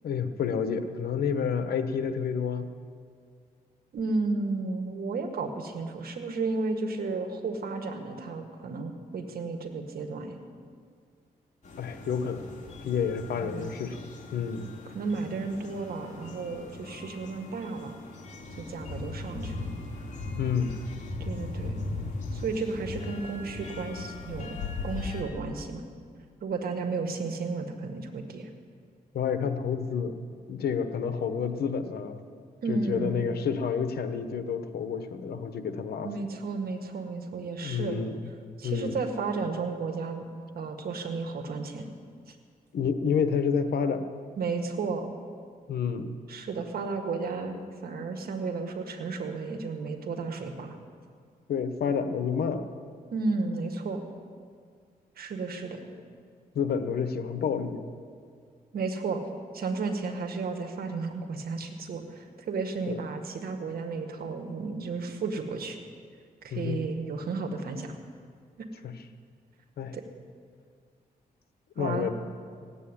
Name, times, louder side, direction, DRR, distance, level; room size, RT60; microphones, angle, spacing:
voice 1, 0.0-2.7 11.8-12.4 12.8-14.0 14.3-14.7 20.4-20.7 29.1-30.1 30.5-32.2 32.7-36.1 37.6-38.3 38.6-38.9 42.7-44.1 45.7-46.2 51.5-52.6 56.5-57.8 62.9-63.0 66.5-66.8 69.8-69.9 71.8-72.1, left 6 dB, 85° left, 9 dB, 1.1 m, -29 dB
voice 2, 3.9-10.4 13.4-13.7 14.9-18.0 18.6-19.7 21.2-21.8 22.3-25.8 26.4-28.5 32.6-33.2 36.0-38.0 38.6-40.3 40.6-41.9 42.3-42.4 44.4-45.2 46.3-50.8 53.1-54.0 55.2-55.8 58.7-59.2 59.5-65.8 66.4-67.9 68.6-68.7 69.9-70.0 71.8-72.1, right 4 dB, 75° right, 5 dB, 1.8 m, -33 dB
sound 1, 11.6-25.2, left 3 dB, 50° left, 3.1 m, -39 dB
16.0 x 8.3 x 9.9 m, 2.1 s
cardioid pair, 80°, 16 cm